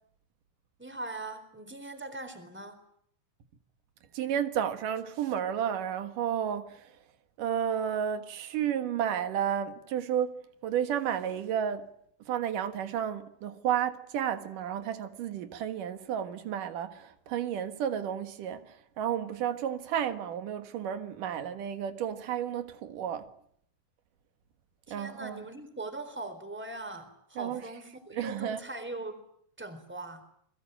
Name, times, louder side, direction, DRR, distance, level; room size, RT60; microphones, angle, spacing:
voice 1, 0.8-2.8 24.9-29.1 29.6-30.3, right 2 dB, 5° right, 3.7 m, -41 dB
voice 2, 4.1-6.8 7.4-11.9 12.3-23.3 24.9-25.4 27.4-27.6 28.1-28.6, right 9 dB, 85° right, 3.2 m, -32 dB
29.0 x 21.5 x 9.1 m
omnidirectional pair, 3.6 m